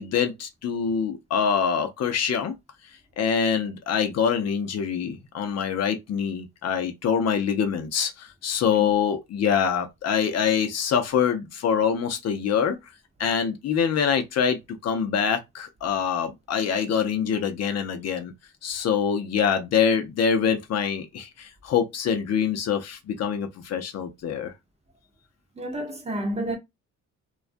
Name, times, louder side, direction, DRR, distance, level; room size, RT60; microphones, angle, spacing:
voice 1, 0.0-2.6 3.2-12.8 13.2-18.3 18.6-24.5, left 7 dB, 60° left, 0.6 m, -25 dB
voice 2, 25.6-26.6, right 1 dB, 20° right, 0.8 m, -30 dB
2.3 x 2.2 x 2.5 m
cardioid pair, 90°, 30 cm